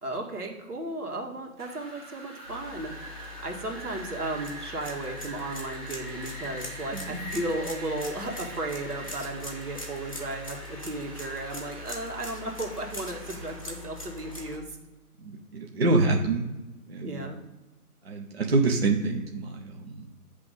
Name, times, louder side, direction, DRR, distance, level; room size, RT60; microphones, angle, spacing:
voice 1, 0.0-14.8 17.0-17.4, right 2 dB, 85° right, 1 dB, 2.0 m, -35 dB
Wind, 1.6-13.6, right 1 dB, 15° right, 2.3 m, -44 dB
sound 1, 2.5-14.6, left 2 dB, 25° left, 0.7 m, -42 dB
voice 2, 6.9-7.4 15.2-16.5 16.9-17.3 18.0-20.1, right 3 dB, 40° right, 1 dB, 0.8 m, -26 dB
8.0 x 3.4 x 5.2 m, 1.1 s
hypercardioid pair, 175°, 45 cm